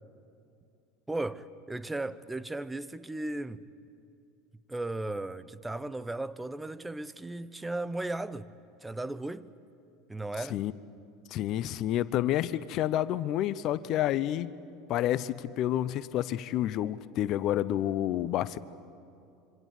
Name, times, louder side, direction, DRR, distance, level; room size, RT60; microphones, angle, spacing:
voice 1, 1.1-3.6 4.7-8.5 8.8-9.5 10.1-10.6, right 2 dB, 10° right, 1.0 m, -36 dB
voice 2, 11.3-14.5 14.9-18.6, left 12 dB, 50° left, 0.8 m, -29 dB
26.0 x 25.5 x 8.4 m
hypercardioid pair, 85°, 0 cm